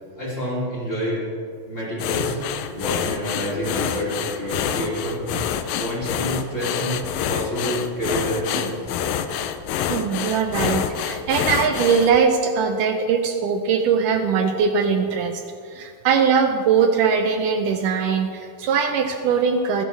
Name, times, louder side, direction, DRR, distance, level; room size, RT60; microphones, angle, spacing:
voice 1, 0.2-1.2 1.7-2.3 2.7-5.2 5.8-7.0 7.3-8.7, equal, 20° left, -6 dB, 3.7 m, -27 dB
sound 1, 2.0-12.2, left 8 dB, 85° left, 2.4 m, -27 dB
voice 2, 9.9-15.4 15.7-19.8, right 6 dB, 75° right, 5 dB, 2.2 m, -21 dB
26.0 x 11.0 x 3.5 m, 2.2 s
omnidirectional pair, 3.9 m